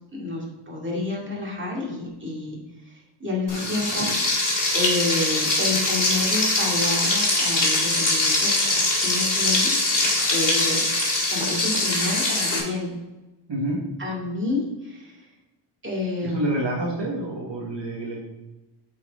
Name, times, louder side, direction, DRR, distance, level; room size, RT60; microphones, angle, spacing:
voice 1, 0.1-4.4 4.7-9.8 10.3-10.9 11.3-12.9 14.0-15.3 15.8-16.6, left 2 dB, 25° right, -3 dB, 2.2 m, -29 dB
Frying (food), 3.5-12.6, left 2 dB, 40° left, 2.4 m, -22 dB
voice 2, 13.5-13.8 16.2-18.2, right 1 dB, 60° right, -2 dB, 1.4 m, -28 dB
8.2 x 4.8 x 3.5 m, 1.1 s
wide cardioid pair, 105°, 50 cm